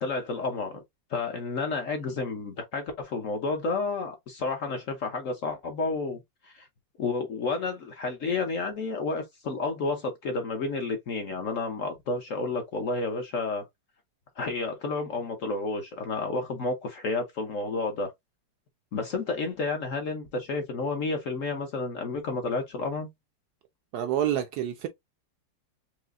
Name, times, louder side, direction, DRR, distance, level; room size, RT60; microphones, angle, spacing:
voice 1, 0.0-0.8 1.1-6.7 7.0-13.6 14.4-18.1 18.9-23.1, left 3 dB, 55° left, 1.0 m, -31 dB
voice 2, 23.9-24.9, right 11 dB, 70° right, 1.0 m, -28 dB
4.9 x 2.8 x 2.4 m
omnidirectional pair, 2.0 m